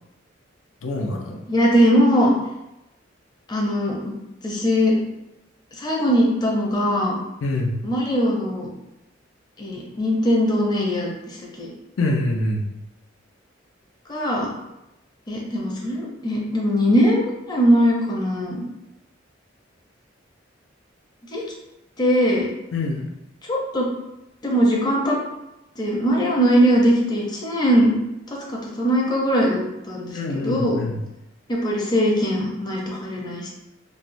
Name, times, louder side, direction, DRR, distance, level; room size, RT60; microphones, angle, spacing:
voice 1, 0.8-1.4 7.4-7.8 12.0-12.7 22.7-23.1 30.1-31.0, left 2 dB, 80° left, 1 dB, 0.5 m, -25 dB
voice 2, 1.5-2.3 3.5-4.2 4.4-4.9 5.8-7.2 7.8-8.7 9.6-11.7 14.1-14.5 15.3-18.6 21.3-21.4 22.0-22.5 23.5-23.9 24.4-25.2 25.8-27.9 28.3-28.4 28.8-29.6 29.9-30.8 31.5-33.5, equal, 20° left, -2 dB, 0.5 m, -20 dB
3.2 x 2.1 x 2.6 m, 0.91 s
head